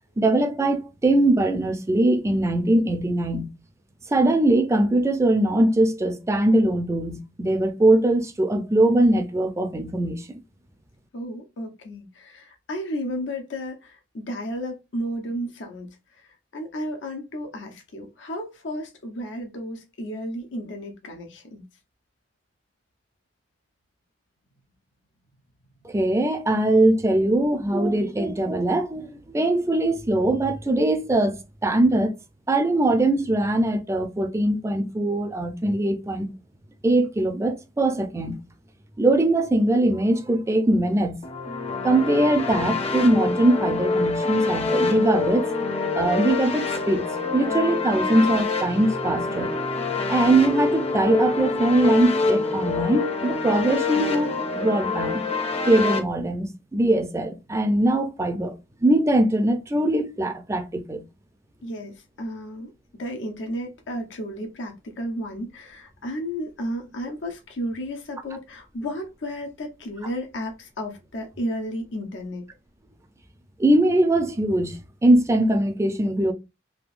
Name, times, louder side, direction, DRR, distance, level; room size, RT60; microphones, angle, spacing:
voice 1, 0.2-3.5 4.1-10.4 25.8-31.3 31.6-32.2 32.5-36.3 36.8-38.4 39.0-41.2 41.8-45.5 45.9-49.5 50.1-55.2 55.6-58.5 58.8-61.0 73.6-76.3, right 1 dB, 15° right, 0.4 m, -21 dB
voice 2, 11.1-21.6 61.6-72.4, equal, 85° left, 0.7 m, -33 dB
sound 1, 41.2-56.0, left 3 dB, 35° left, 0.6 m, -26 dB
3.5 x 2.7 x 2.4 m
head